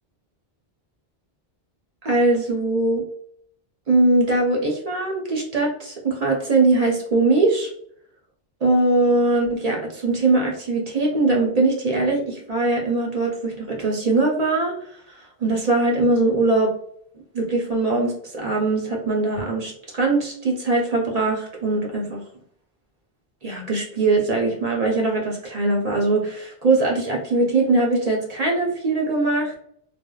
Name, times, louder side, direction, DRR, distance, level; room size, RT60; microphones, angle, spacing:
voice 1, 2.0-3.0 3.9-7.7 8.6-14.7 15.1-16.7 17.3-22.2 23.4-29.5, right 2 dB, 45° right, -1 dB, 0.6 m, -21 dB
3.2 x 2.0 x 2.2 m, 0.64 s
omnidirectional pair, 1.1 m